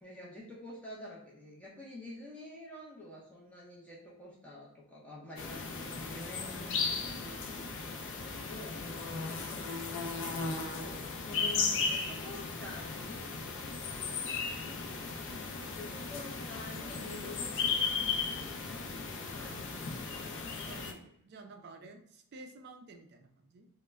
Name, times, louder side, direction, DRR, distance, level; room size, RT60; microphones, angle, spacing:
voice 1, 0.0-7.7 8.2-9.7 10.3-13.3 14.0-14.6 15.7-20.8, left 1 dB, 5° left, -5 dB, 0.5 m, -48 dB
sound 1, 5.4-20.9, left 5 dB, 55° left, 0.4 m, -36 dB
voice 2, 19.5-19.8 20.6-23.7, right 3 dB, 50° right, 5 dB, 0.3 m, -52 dB
2.1 x 2.1 x 3.4 m, 0.71 s
head